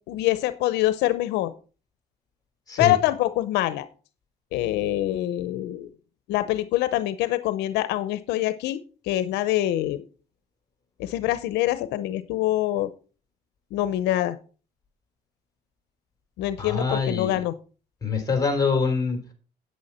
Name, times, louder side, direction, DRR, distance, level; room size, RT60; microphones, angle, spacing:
voice 1, 0.1-1.5 2.8-3.9 4.5-5.9 6.3-8.8 9.0-10.0 11.0-12.9 13.7-14.4 16.4-17.5, left 14 dB, 85° left, 13 dB, 0.7 m, -25 dB
voice 2, 16.6-17.4 18.0-19.2, left 5 dB, 20° left, 4 dB, 3.7 m, -24 dB
9.5 x 9.0 x 4.2 m, 0.36 s
cardioid pair, 110°, 17 cm